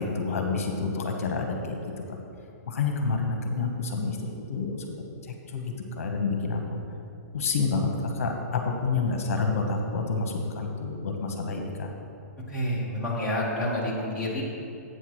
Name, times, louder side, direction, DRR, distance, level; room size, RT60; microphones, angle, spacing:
voice 1, 0.0-1.8 2.7-4.2 4.5-4.9 5.5-6.8 7.3-11.9, left 4 dB, 55° left, 3 dB, 1.0 m, -28 dB
voice 2, 12.5-14.4, left 1 dB, 5° right, -7 dB, 0.9 m, -28 dB
8.0 x 4.5 x 6.3 m, 2.6 s
hypercardioid pair, 180°, 9 cm